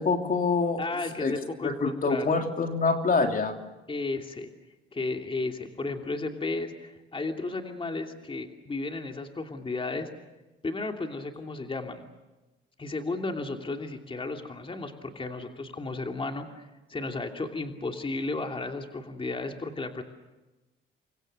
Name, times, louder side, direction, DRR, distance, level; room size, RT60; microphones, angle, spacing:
voice 1, 0.0-0.8 1.2-1.3 1.6-3.6, left 4 dB, 45° left, 5 dB, 3.2 m, -25 dB
voice 2, 0.8-2.3 3.9-4.5 4.9-10.1 10.6-12.0 12.8-20.0, left 3 dB, 25° left, 4 dB, 2.9 m, -34 dB
30.0 x 24.0 x 6.7 m, 1.1 s
cardioid pair, 90°, 20 cm